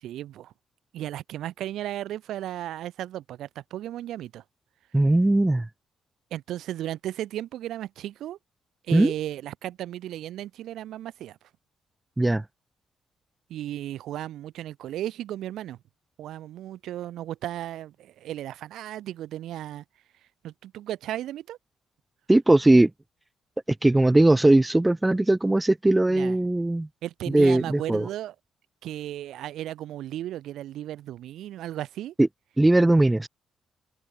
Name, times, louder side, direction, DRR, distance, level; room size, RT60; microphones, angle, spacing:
voice 1, 0.0-0.5 0.9-4.4 6.3-8.4 8.9-11.4 13.5-15.8 16.2-19.8 20.4-21.6 26.1-26.4 27.0-28.3 28.8-32.1, right 12 dB, 80° right, 1.8 m, -35 dB
voice 2, 4.9-5.7 8.9-9.1 12.2-12.4 22.3-22.9 23.8-26.9 27.3-28.1 32.2-32.3 32.6-33.3, right 2 dB, 10° right, 0.7 m, -19 dB
cardioid pair, 90°, 0 cm